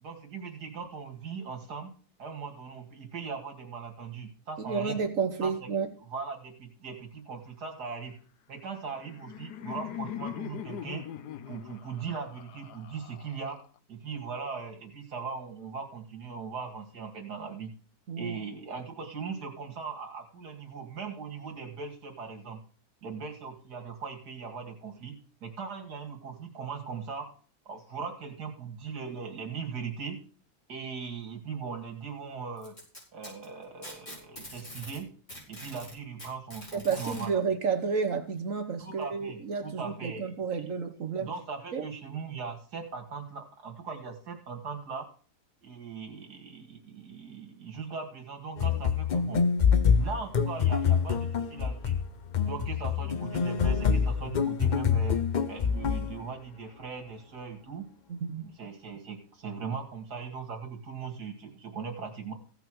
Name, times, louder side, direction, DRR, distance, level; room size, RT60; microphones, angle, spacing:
voice 1, 0.0-1.9 2.2-5.0 5.4-5.7 6.1-8.2 8.5-11.0 11.5-13.6 13.9-17.7 18.2-22.6 23.0-27.3 27.7-30.2 30.7-32.8 33.1-35.1 35.5-37.4 38.8-40.7 41.2-45.1 45.6-49.4 49.9-52.0 52.4-55.2 55.5-57.9 58.4-62.3, right 5 dB, 85° right, 2.6 m, -39 dB
voice 2, 4.6-5.9 18.1-18.4 36.7-41.3 41.7-41.9 58.1-58.4, right 5 dB, 60° right, 1.4 m, -31 dB
Laughter, 8.7-13.8, left 11 dB, 85° left, 1.3 m, -41 dB
Packing tape duct tape, 32.6-35.0 35.3-37.3 38.4-38.5 39.0-39.1 40.0-40.1, equal, 25° left, 5.7 m, -44 dB
sound 1, 48.6-56.2, left 6 dB, 50° left, 0.5 m, -26 dB
16.0 x 5.8 x 6.2 m
omnidirectional pair, 1.7 m